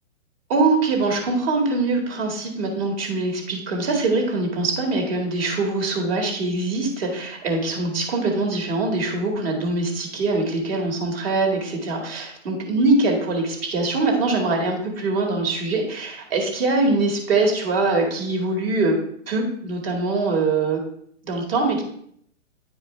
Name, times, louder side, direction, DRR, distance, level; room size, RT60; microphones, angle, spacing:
voice 1, 0.5-19.0 19.3-20.8 21.2-21.8, right 3 dB, 50° right, 2 dB, 1.9 m, -23 dB
9.3 x 4.7 x 3.2 m, 0.67 s
hypercardioid pair, 145°, 38 cm